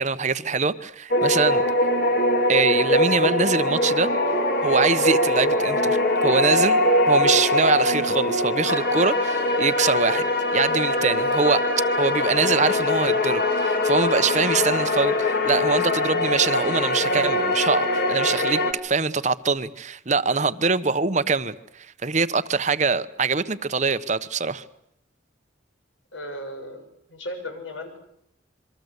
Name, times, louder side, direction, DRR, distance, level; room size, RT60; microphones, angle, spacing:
voice 1, 0.0-1.6 2.5-4.1 4.6-10.3 10.5-11.6 12.0-24.6, right 4 dB, 40° right, 13 dB, 1.0 m, -23 dB
sound 1, 1.1-18.7, left 1 dB, 55° left, 3.0 m, -22 dB
voice 2, 26.1-26.8 27.1-28.0, left 1 dB, 80° left, 5 dB, 6.7 m, -36 dB
27.0 x 24.0 x 8.1 m, 0.73 s
head